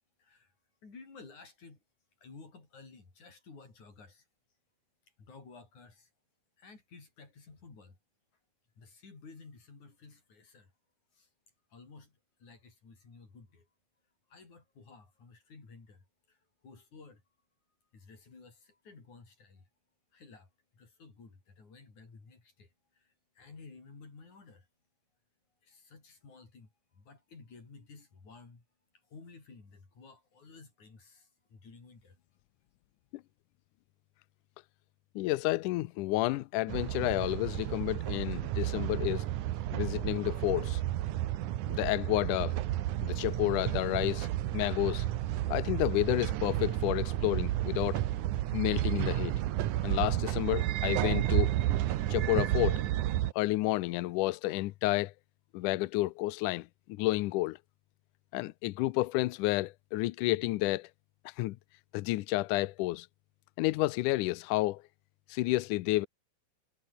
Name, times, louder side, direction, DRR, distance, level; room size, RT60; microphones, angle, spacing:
voice 1, 0.2-0.5 0.8-1.8 2.2-4.3 5.2-6.1 6.6-8.0 8.8-10.7 11.1-11.3 11.7-13.7 14.3-16.4 16.6-17.2 17.9-19.7 20.1-24.7 25.6-26.7 26.9-28.7 29.1-32.2, left 4 dB, 50° left, 7.5 m, -54 dB
voice 2, 35.2-39.3 39.7-40.8 41.7-42.6 43.0-44.3 44.5-45.1 45.5-48.0 48.5-49.4 49.8-51.5 52.1-52.8 53.4-55.1 55.5-57.6 58.3-60.9 61.3-61.6 61.9-63.1 63.6-64.8 65.3-66.1, left 18 dB, 80° left, 1.8 m, -30 dB
sound 1, 36.7-53.3, right 14 dB, 70° right, 2.2 m, -31 dB
omnidirectional pair, 4.4 m